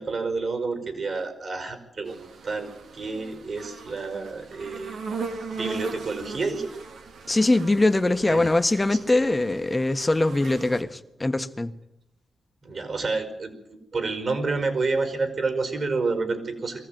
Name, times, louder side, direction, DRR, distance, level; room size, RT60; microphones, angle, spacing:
voice 1, 0.0-2.2 2.4-4.9 5.3-6.7 8.2-9.0 12.6-13.6 13.9-16.8, right 3 dB, 55° right, 5.0 m, -29 dB
sound 1, 2.1-10.8, right 4 dB, 80° right, 2.4 m, -38 dB
voice 2, 7.3-11.7, left 2 dB, 25° left, 1.5 m, -22 dB
22.0 x 15.0 x 9.3 m
cardioid pair, 55°, 0 cm